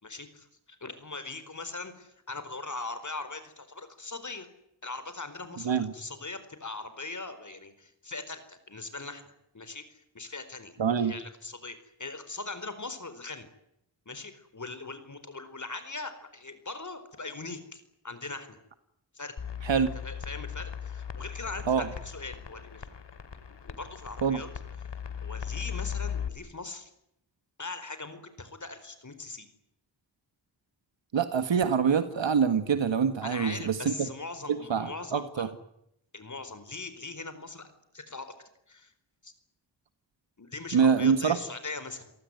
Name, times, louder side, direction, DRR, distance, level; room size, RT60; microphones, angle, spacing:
voice 1, 0.0-4.5 4.8-13.5 14.1-18.6 19.1-19.4 19.7-22.9 23.6-24.5 25.2-26.9 27.6-29.5 33.2-35.5 36.1-37.7 37.9-38.3 38.7-38.9 39.2-39.3 40.4-42.1, left 3 dB, 40° left, 11 dB, 4.5 m, -40 dB
voice 2, 10.8-11.1 19.6-19.9 21.7-21.9 24.2-24.4 31.1-33.9 34.5-35.5 40.7-41.4, right 6 dB, 85° right, 10 dB, 1.8 m, -25 dB
sound 1, 19.4-26.3, left 8 dB, 70° left, 2.8 m, -38 dB
28.5 x 18.5 x 9.4 m, 0.79 s
cardioid pair, 60°, 43 cm